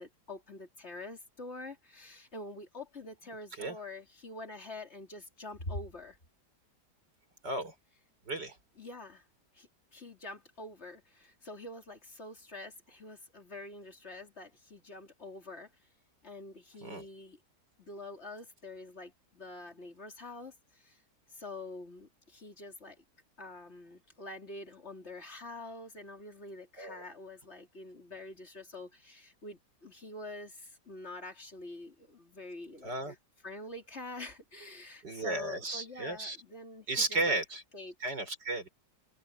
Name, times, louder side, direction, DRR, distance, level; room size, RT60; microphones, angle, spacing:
voice 1, 0.0-6.2 8.8-9.3 9.5-15.7 16.2-17.4 17.8-21.0 21.3-23.0 23.4-33.2 33.4-37.4 37.7-38.2, left 2 dB, 40° left, 3.6 m, -46 dB
voice 2, 7.4-7.7 8.3-8.6 16.8-17.1 26.8-27.0 32.8-33.1 35.0-36.4 36.9-37.6 38.0-38.7, right 2 dB, 90° right, 6.6 m, -34 dB
open air
omnidirectional pair, 1.8 m